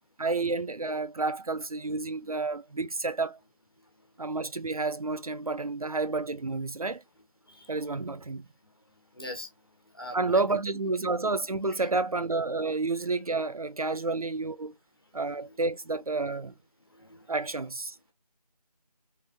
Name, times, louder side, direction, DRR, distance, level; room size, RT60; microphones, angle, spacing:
voice 1, 0.2-3.4 4.2-7.0 7.7-8.5 10.1-14.7 15.1-16.5 17.3-18.1, right 3 dB, 60° right, 0.5 m, -30 dB
voice 2, 9.1-9.5 9.9-10.4 10.7-10.8 15.4-15.5 17.0-17.2, left 1 dB, 35° left, 1.4 m, -41 dB
3.8 x 3.5 x 2.6 m
figure-of-eight pair, 175°, 20 cm